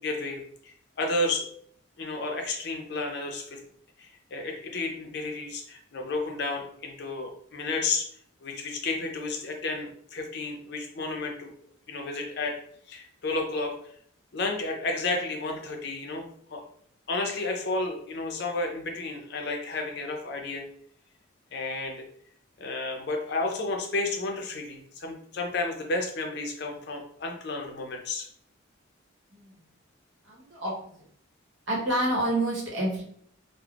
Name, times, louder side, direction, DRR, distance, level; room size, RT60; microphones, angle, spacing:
voice 1, 0.0-1.5 2.0-3.6 4.0-8.1 8.4-11.5 11.9-12.5 12.9-13.7 14.3-16.6 17.1-20.6 21.5-22.0 22.6-28.3, left 2 dB, 55° left, 2 dB, 0.5 m, -32 dB
voice 2, 30.3-30.7 31.7-33.0, right 1 dB, 65° right, -3 dB, 0.9 m, -28 dB
3.3 x 2.0 x 2.3 m, 0.62 s
head